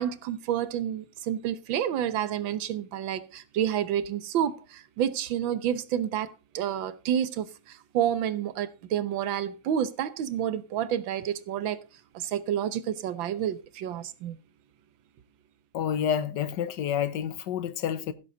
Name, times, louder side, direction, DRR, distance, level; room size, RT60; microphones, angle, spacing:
voice 1, 0.0-11.8 12.1-14.4, right 10 dB, 80° right, 1.7 m, -29 dB
voice 2, 15.7-18.1, left 9 dB, 65° left, 1.5 m, -29 dB
15.5 x 7.8 x 3.9 m
omnidirectional pair, 2.1 m